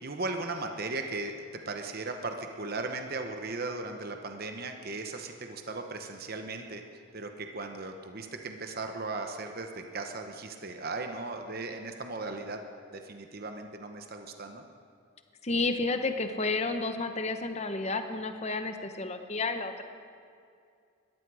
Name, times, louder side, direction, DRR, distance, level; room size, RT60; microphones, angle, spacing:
voice 1, 0.0-6.8 7.1-12.6 12.9-14.6, right 3 dB, 45° right, 5 dB, 0.9 m, -37 dB
voice 2, 15.4-19.8, left 3 dB, 30° left, 7 dB, 1.0 m, -31 dB
20.5 x 14.0 x 4.9 m, 2.3 s
head